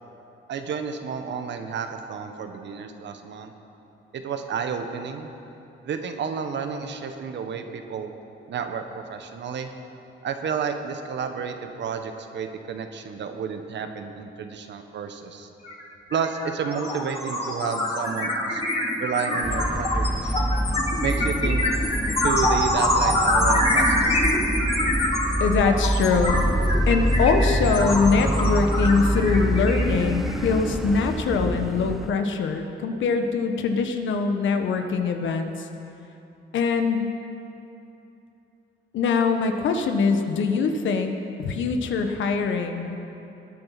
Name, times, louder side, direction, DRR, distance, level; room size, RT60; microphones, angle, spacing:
voice 1, 0.5-3.5 4.1-5.3 5.8-8.1 8.5-9.7 10.2-15.5 16.1-18.6 19.0-20.6 21.0-21.6 22.2-24.2, right 6 dB, 65° right, 6 dB, 1.4 m, -31 dB
sound 1, 15.6-15.8 16.1-30.4, left 1 dB, 30° left, 3.3 m, -24 dB
sound 2, 19.4-32.1, equal, ahead, 0.4 m, -26 dB
voice 2, 25.4-26.4 26.9-35.7 36.5-37.1 38.9-43.0, left 5 dB, 75° left, 6 dB, 1.3 m, -23 dB
19.5 x 9.4 x 5.9 m, 2.9 s
cardioid pair, 90°, 20 cm